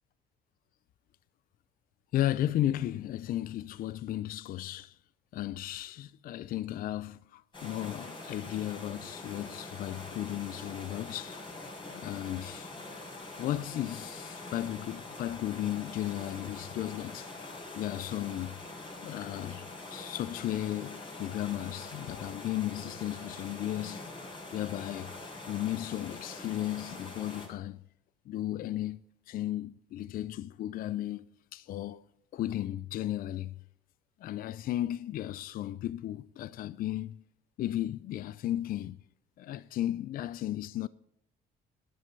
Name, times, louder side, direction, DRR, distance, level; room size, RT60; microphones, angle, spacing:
voice 1, 2.1-5.0 5.3-11.5 11.9-12.7 13.4-18.6 19.0-24.1 24.5-25.1 25.5-27.8 28.3-29.0 29.3-31.3 31.5-32.0 32.3-33.5 34.2-37.2 37.6-39.0 39.4-40.9, left 13 dB, 60° left, 0.5 m, -35 dB
sound 1, 7.5-27.5, left 2 dB, 30° left, 5.9 m, -44 dB
12.0 x 11.0 x 5.4 m
cardioid pair, 110°, 17 cm